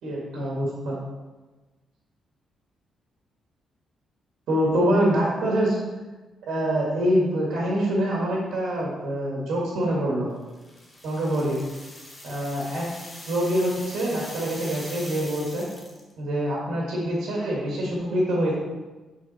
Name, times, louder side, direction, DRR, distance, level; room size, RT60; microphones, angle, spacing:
voice 1, 0.0-1.0 4.5-5.8 6.5-10.3 11.0-11.6 12.2-12.8 13.3-15.7 16.2-18.5, right 1 dB, 70° right, -4 dB, 1.8 m, -25 dB
sound 1, 10.5-16.1, left 1 dB, 10° left, 1.0 m, -42 dB
8.5 x 3.9 x 4.2 m, 1.2 s
cardioid pair, 140°, 0 cm